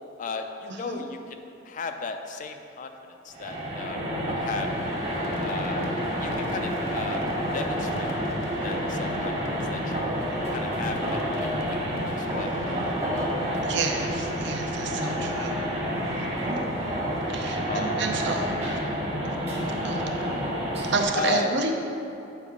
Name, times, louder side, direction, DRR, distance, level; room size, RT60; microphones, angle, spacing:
voice 1, 0.2-2.9 3.2-4.0 4.3-4.7 5.4-5.9 6.2-7.2 7.5-8.1 8.6-9.3 9.7-10.2 10.5-11.8 12.1-12.5 15.1-15.2 17.7-18.0 21.1-21.5, left 5 dB, 40° left, 6 dB, 0.3 m, -35 dB
sound 1, 3.3-21.0, equal, 30° right, 1.1 m, -29 dB
sound 2, 4.4-17.4, left 2 dB, 15° right, 0.6 m, -42 dB
Fireworks, 5.2-14.8, left 1 dB, 80° left, 0.6 m, -44 dB
voice 2, 13.6-15.6 16.2-16.7 17.3-18.8 19.2-19.3 19.8-20.0 20.9-21.7, right 3 dB, 60° right, 3 dB, 0.6 m, -30 dB
6.8 x 4.6 x 3.5 m, 2.8 s
head